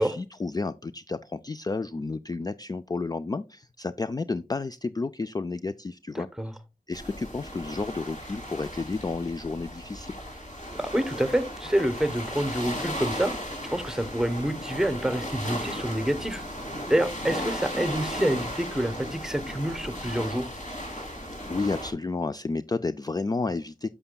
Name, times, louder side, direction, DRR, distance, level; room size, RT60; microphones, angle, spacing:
voice 1, 0.0-6.3 6.9-10.2 21.5-23.9, left 3 dB, 25° left, 0.3 m, -31 dB
voice 2, 6.1-6.5 10.7-16.4 16.9-20.5, right 1 dB, 5° right, 0.9 m, -27 dB
sound 1, 6.9-21.9, equal, 55° left, 3.1 m, -36 dB
11.0 x 6.8 x 2.2 m
wide cardioid pair, 65°, 15 cm